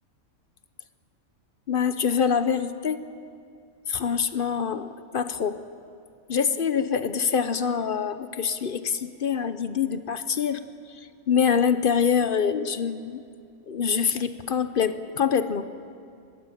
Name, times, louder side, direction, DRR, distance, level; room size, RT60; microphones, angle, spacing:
voice 1, 1.7-3.1 3.9-5.6 6.3-13.2 13.7-15.7, left 7 dB, 45° left, 12 dB, 0.8 m, -25 dB
21.0 x 16.0 x 9.9 m, 2.3 s
omnidirectional pair, 1.4 m